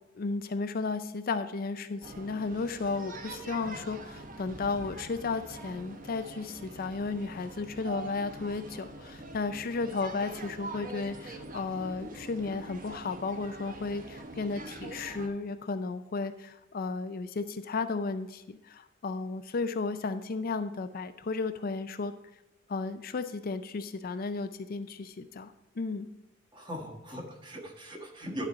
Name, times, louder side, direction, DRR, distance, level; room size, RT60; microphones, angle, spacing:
voice 1, 0.1-22.1 22.7-26.1, left 4 dB, 50° left, 10 dB, 0.4 m, -34 dB
sound 1, 2.0-15.3, right 2 dB, 45° right, 0.9 m, -44 dB
voice 2, 26.5-28.5, equal, 25° right, 1 dB, 1.5 m, -40 dB
11.5 x 4.3 x 5.2 m, 1.0 s
head